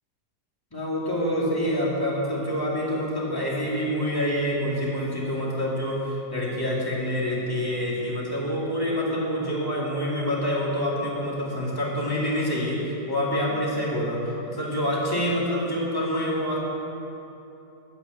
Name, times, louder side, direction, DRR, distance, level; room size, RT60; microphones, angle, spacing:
voice 1, 0.7-16.6, equal, 15° left, -5 dB, 2.3 m, -27 dB
11.0 x 8.2 x 7.8 m, 2.9 s
omnidirectional pair, 1.8 m